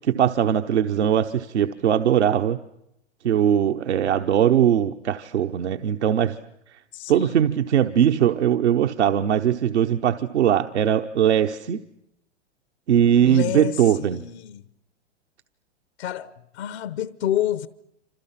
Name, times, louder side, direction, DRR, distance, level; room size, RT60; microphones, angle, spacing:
voice 1, 0.0-2.6 3.2-6.4 7.1-11.8 12.9-14.2, right 9 dB, 85° right, 1.0 m, -20 dB
voice 2, 6.9-7.5 13.2-14.7 16.0-17.7, left 12 dB, 70° left, 1.0 m, -29 dB
28.5 x 27.0 x 5.8 m
hypercardioid pair, 115°, 34 cm